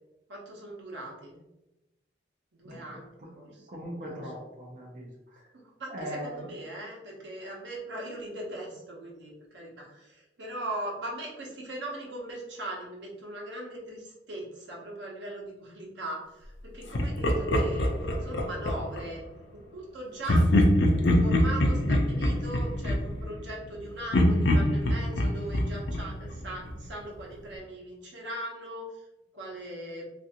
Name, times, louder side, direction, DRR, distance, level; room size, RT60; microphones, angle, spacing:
voice 1, 0.3-1.4 2.5-3.7 4.0-4.3 5.6-17.9 18.2-19.2 19.5-20.4 21.2-29.0 29.3-30.1, right 1 dB, 75° right, -2 dB, 0.9 m, -40 dB
voice 2, 3.7-5.1 5.9-6.5 7.4-7.5, equal, 45° right, -4 dB, 0.5 m, -39 dB
Laughter, 16.9-19.1 20.2-23.7 24.1-26.9, equal, 75° left, 0.5 m, -25 dB
3.3 x 2.5 x 2.8 m, 0.97 s
head